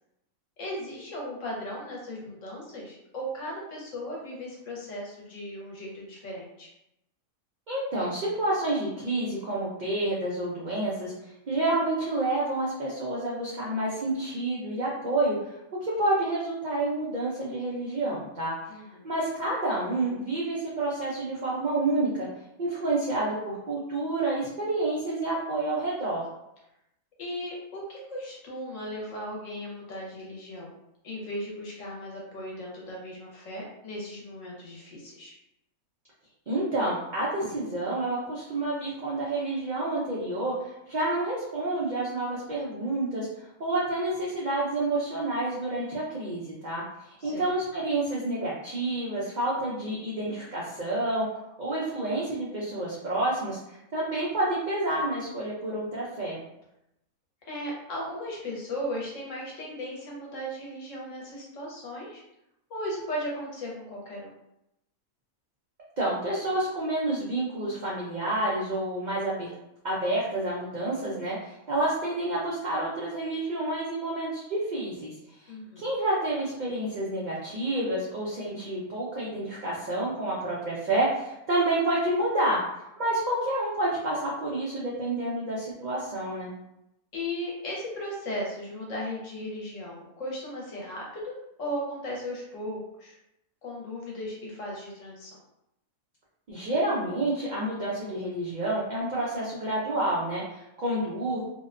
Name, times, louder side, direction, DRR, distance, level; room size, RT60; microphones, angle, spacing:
voice 1, 0.6-6.7 18.7-19.1 27.2-30.7 31.0-35.3 47.2-47.5 57.5-62.2 62.7-64.3 75.5-75.9 87.1-93.2 93.6-95.4 100.8-100.9, equal, 65° left, -3 dB, 1.0 m, -36 dB
voice 2, 7.7-11.1 11.5-15.5 15.8-18.5 19.0-22.3 22.6-26.3 36.5-40.5 40.9-43.3 43.6-46.8 47.2-51.3 51.6-56.4 66.0-69.5 69.8-75.1 75.8-82.6 83.0-86.5 96.5-101.4, right 2 dB, 75° right, -6 dB, 0.4 m, -29 dB
2.7 x 2.1 x 2.4 m, 0.84 s
omnidirectional pair, 1.5 m